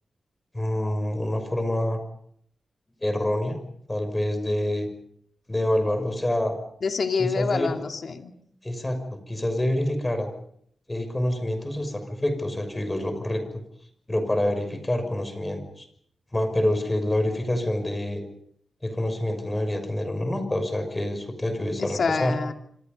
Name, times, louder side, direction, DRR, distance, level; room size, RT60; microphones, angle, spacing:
voice 1, 0.5-2.0 3.0-3.6 3.9-4.9 5.5-6.6 7.2-7.8 8.6-9.0 9.3-10.3 10.9-13.4 14.1-15.9 16.3-18.2 18.8-22.3, left 1 dB, 15° left, 7 dB, 6.2 m, -26 dB
voice 2, 6.8-8.3 21.8-22.5, left 5 dB, 60° left, 5 dB, 2.7 m, -27 dB
27.5 x 26.0 x 5.4 m, 0.67 s
wide cardioid pair, 105°, 0 cm